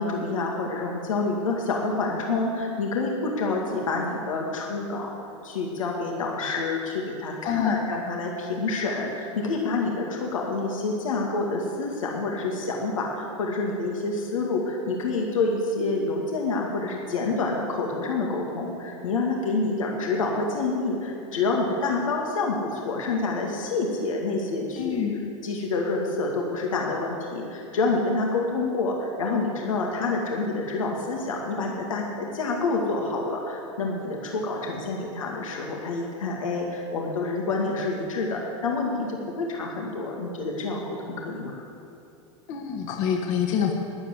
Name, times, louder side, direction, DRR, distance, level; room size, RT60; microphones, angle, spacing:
voice 1, 0.0-5.1 5.4-25.1 25.4-41.6, left 3 dB, 90° left, -1 dB, 2.1 m, -28 dB
voice 2, 7.4-7.8 24.8-25.2 42.5-43.7, left 8 dB, 55° left, 2 dB, 1.7 m, -26 dB
13.0 x 10.0 x 8.0 m, 2.8 s
hypercardioid pair, 110°, 16 cm